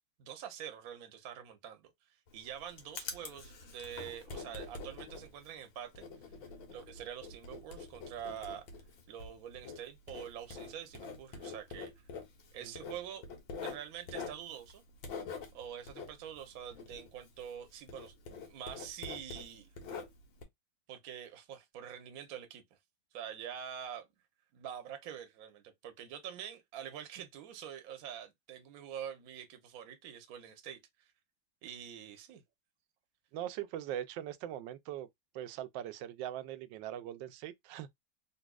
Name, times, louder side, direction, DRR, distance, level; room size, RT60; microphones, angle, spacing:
voice 1, 0.2-1.9 2.3-6.1 6.7-8.6 9.1-11.9 12.5-13.2 13.6-14.8 15.5-19.7 20.9-22.6 23.1-24.1 24.5-31.1 31.6-32.4, right 9 dB, 60° right, 1.1 m, -46 dB
Writing, 2.3-17.6 17.9-20.4, left 4 dB, 80° left, 1.8 m, -46 dB
voice 2, 33.3-35.1 35.3-37.9, right 11 dB, 75° right, 1.2 m, -41 dB
4.1 x 2.7 x 2.3 m
omnidirectional pair, 2.1 m